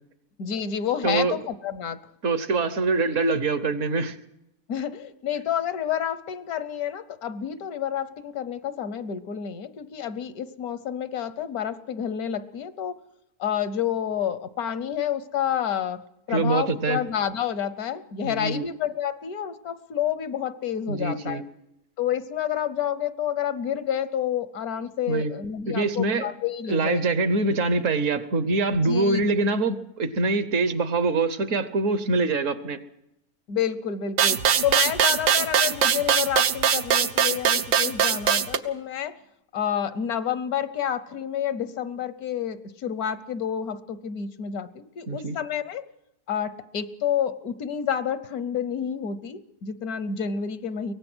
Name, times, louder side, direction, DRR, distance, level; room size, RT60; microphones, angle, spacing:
voice 1, 0.4-2.0 4.7-13.0 13.4-16.0 16.3-21.4 22.0-27.1 28.7-29.4 33.5-39.1 39.5-45.9 46.3-50.9, left 9 dB, 75° left, 14 dB, 1.4 m, -29 dB
voice 2, 1.0-1.4 2.2-4.2 16.3-17.0 18.2-18.7 20.9-21.4 25.1-25.3 25.7-26.3 26.7-32.8 45.1-45.4, right 3 dB, 60° right, 13 dB, 1.3 m, -24 dB
sound 1, 34.2-38.6, right 8 dB, 75° right, 1.4 m, -21 dB
23.5 x 18.0 x 6.2 m, 0.86 s
omnidirectional pair, 1.6 m